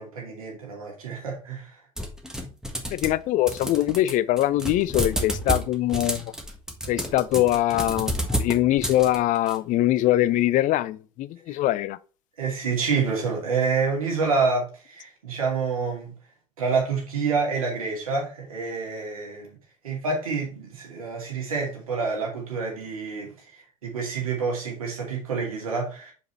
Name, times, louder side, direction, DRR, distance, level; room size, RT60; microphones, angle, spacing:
voice 1, 0.0-1.7 12.4-16.1 16.6-19.6 19.8-23.3 23.8-26.1, right 4 dB, 75° right, 2.6 m, -27 dB
sound 1, 2.0-3.2 3.5-9.6, right 1 dB, 5° right, 1.6 m, -30 dB
voice 2, 2.9-6.3 6.9-12.0, left 14 dB, 45° left, 0.5 m, -23 dB
5.3 x 4.9 x 4.4 m
figure-of-eight pair, 65°, 18 cm